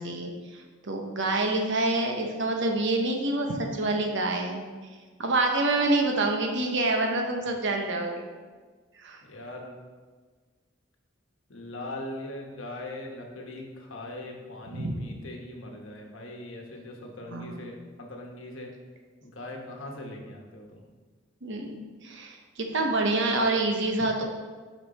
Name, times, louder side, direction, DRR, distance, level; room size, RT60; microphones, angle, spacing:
voice 1, 0.0-4.6 5.2-8.3 9.0-9.2 14.7-14.9 17.3-17.6 21.4-21.7 22.0-24.2, right 2 dB, 65° right, 2 dB, 1.0 m, -27 dB
voice 2, 9.2-9.8 11.5-18.7 19.2-20.8, left 1 dB, 75° left, 1 dB, 1.2 m, -40 dB
6.2 x 5.4 x 4.2 m, 1.4 s
head